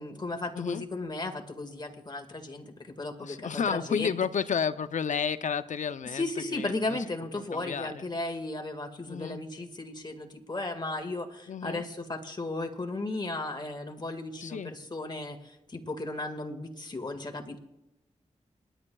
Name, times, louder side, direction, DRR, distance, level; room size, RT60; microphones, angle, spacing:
voice 1, 0.0-4.2 6.1-17.6, left 2 dB, 35° left, 5 dB, 1.8 m, -35 dB
voice 2, 3.2-7.0 7.3-8.1 9.1-9.4 11.5-11.8 14.4-14.7, left 7 dB, 80° left, 12 dB, 0.5 m, -32 dB
29.0 x 10.0 x 2.3 m, 0.90 s
cardioid pair, 60°, 13 cm